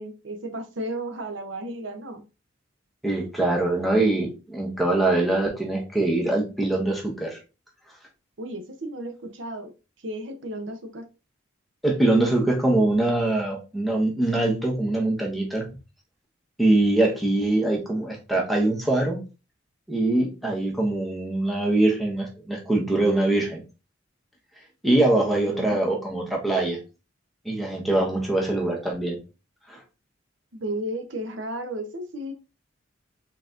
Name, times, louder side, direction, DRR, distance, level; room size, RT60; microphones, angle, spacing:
voice 1, 0.0-2.2 8.4-9.7 10.0-11.1 25.5-25.8 30.5-32.3, right 1 dB, 70° right, 0.8 m, -34 dB
voice 2, 3.0-7.4 11.8-15.7 16.6-19.2 19.9-23.6 24.8-26.8 27.4-29.2 29.7-29.8, right 2 dB, ahead, 1.1 m, -23 dB
4.0 x 4.0 x 2.5 m
head